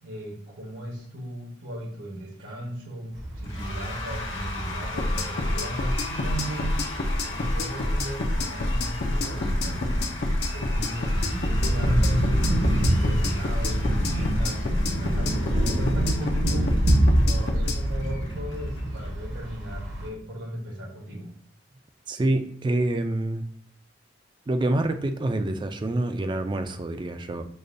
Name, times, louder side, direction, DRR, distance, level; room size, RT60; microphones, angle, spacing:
voice 1, 0.0-6.8 7.2-10.0 10.5-15.4 15.7-16.7 17.1-21.3, right 1 dB, 85° right, -1 dB, 1.1 m, -36 dB
sound 1, 3.1-20.1, right 1 dB, 60° right, 0.9 m, -27 dB
Cheering / Applause / Crowd, 3.4-19.1, left 3 dB, 80° left, 1.3 m, -39 dB
sound 2, 5.0-17.8, left 1 dB, 55° left, 0.5 m, -27 dB
voice 2, 22.1-23.4 24.5-27.4, right 1 dB, 25° right, 8 dB, 0.3 m, -26 dB
6.5 x 2.2 x 2.5 m, 0.64 s
head